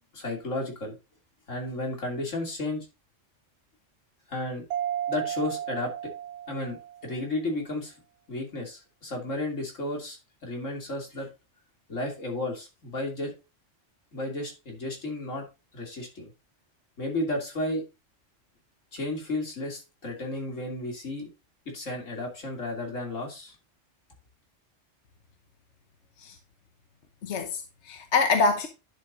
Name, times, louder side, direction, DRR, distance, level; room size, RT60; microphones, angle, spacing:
voice 1, 0.1-1.0 1.5-2.9 4.3-4.6 5.1-6.1 6.5-6.8 7.0-7.9 8.3-11.3 11.9-13.3 14.1-15.4 15.7-16.3 17.0-17.8 18.9-21.3 21.6-23.6, left 2 dB, 85° left, 3.3 m, -33 dB
Mallet percussion, 4.7-7.2, right 10 dB, 70° right, 0.9 m, -33 dB
voice 2, 27.2-28.7, left 4 dB, 65° left, 1.2 m, -25 dB
10.5 x 7.3 x 2.6 m
omnidirectional pair, 1.3 m